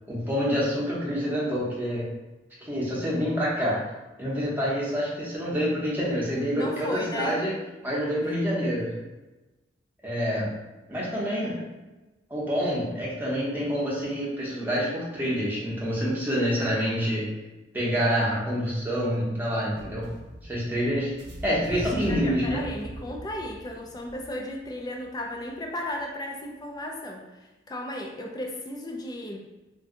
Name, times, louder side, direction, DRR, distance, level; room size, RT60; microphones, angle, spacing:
voice 1, 0.1-2.1 2.6-3.8 4.2-7.5 7.8-8.9 10.0-10.5 10.9-11.5 12.3-17.3 17.7-20.0 20.4-21.1 21.4-22.6, equal, 10° right, -7 dB, 0.8 m, -27 dB
voice 2, 6.5-7.4 11.4-11.7 21.7-27.2 27.7-29.4, left 1 dB, 20° left, 1 dB, 0.4 m, -35 dB
sound 1, 19.7-25.8, equal, 70° right, 0.7 m, -40 dB
2.6 x 2.2 x 3.7 m, 1.1 s
head